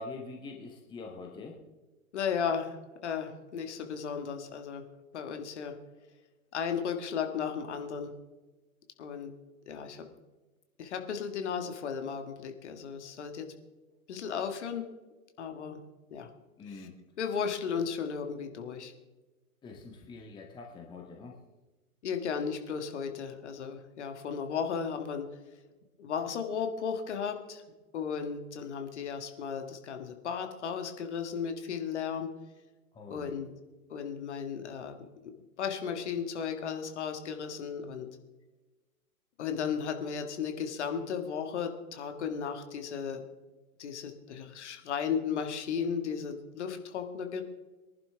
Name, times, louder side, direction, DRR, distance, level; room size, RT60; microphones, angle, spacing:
voice 1, 0.0-1.6 16.6-16.9 19.6-21.4 32.9-33.4, left 3 dB, 10° left, 1 dB, 1.1 m, -44 dB
voice 2, 2.1-2.8 3.0-4.8 5.1-5.7 6.5-8.1 9.0-9.3 9.7-10.1 10.8-13.5 14.1-14.9 15.4-15.8 16.1-16.3 16.7-16.9 17.2-18.9 22.0-25.3 26.0-27.6 27.9-32.3 33.1-33.5 33.9-35.0 35.6-38.1 39.4-43.2 43.8-47.4, left 7 dB, 50° left, 6 dB, 1.9 m, -35 dB
23.0 x 11.0 x 3.5 m, 1.2 s
figure-of-eight pair, 110°, 44 cm